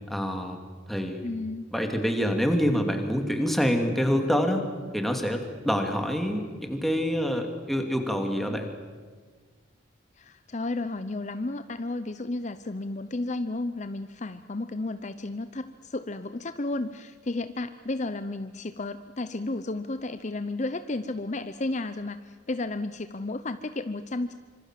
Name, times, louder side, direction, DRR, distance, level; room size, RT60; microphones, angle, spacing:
voice 1, 0.1-0.6 0.9-1.2 1.7-4.7 4.9-8.7, equal, ahead, 4 dB, 2.8 m, -26 dB
voice 2, 1.2-1.7 10.2-24.3, left 2 dB, 40° left, 11 dB, 0.7 m, -33 dB
26.0 x 26.0 x 7.7 m, 1.5 s
head